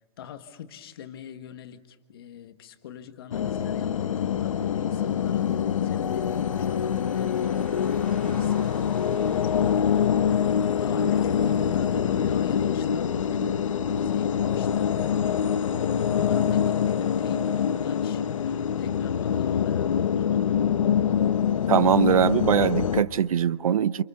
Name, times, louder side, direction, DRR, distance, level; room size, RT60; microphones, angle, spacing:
voice 1, 0.2-15.2 15.8-20.5, left 9 dB, 40° left, 1.6 m, -43 dB
sound 1, 3.3-23.0, left 8 dB, 65° left, 1.2 m, -25 dB
sound 2, 6.1-11.3, equal, 5° left, 3.9 m, -49 dB
voice 2, 21.7-24.0, right 9 dB, 75° right, 0.8 m, -22 dB
29.0 x 28.5 x 7.0 m
hypercardioid pair, 170°, 18 cm